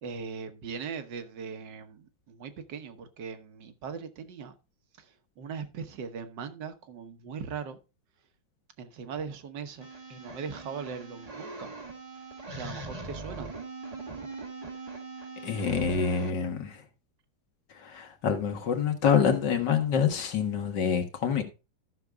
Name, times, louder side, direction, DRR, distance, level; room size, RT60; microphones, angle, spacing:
voice 1, 0.0-4.5 5.0-7.8 8.8-11.7 12.6-13.5, right 6 dB, 65° right, 1.7 m, -40 dB
sound 1, 9.8-16.3, right 3 dB, 25° right, 1.1 m, -41 dB
voice 2, 15.4-16.8 17.7-21.4, left 7 dB, 60° left, 2.0 m, -26 dB
13.5 x 6.6 x 3.5 m
omnidirectional pair, 2.1 m